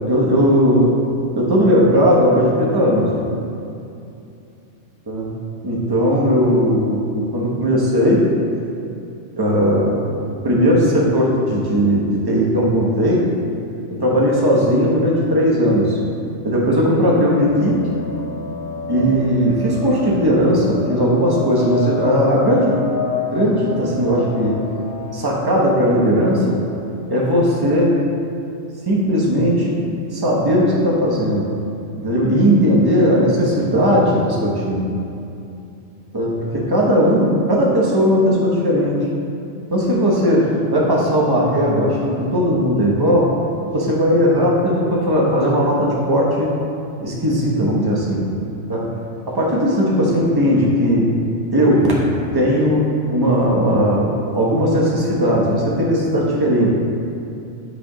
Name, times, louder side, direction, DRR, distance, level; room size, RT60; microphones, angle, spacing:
voice 1, 0.1-0.9 1.4-3.2 5.1-5.3 5.6-8.2 9.4-10.2 10.4-13.2 13.9-16.0 16.4-17.8 18.9-22.8 23.3-24.5 25.1-26.6 27.1-27.9 28.9-29.8 30.1-31.5 32.0-34.9 36.1-38.9 39.7-40.4 40.7-43.3 43.7-46.5 47.0-48.2 48.7-48.8 49.3-51.1 51.5-51.8 52.3-56.7, equal, 20° right, -4 dB, 1.0 m, -17 dB
sound 1, 17.5-26.7, left 3 dB, 55° left, 1.4 m, -30 dB
8.2 x 3.4 x 5.0 m, 2.6 s
omnidirectional pair, 1.3 m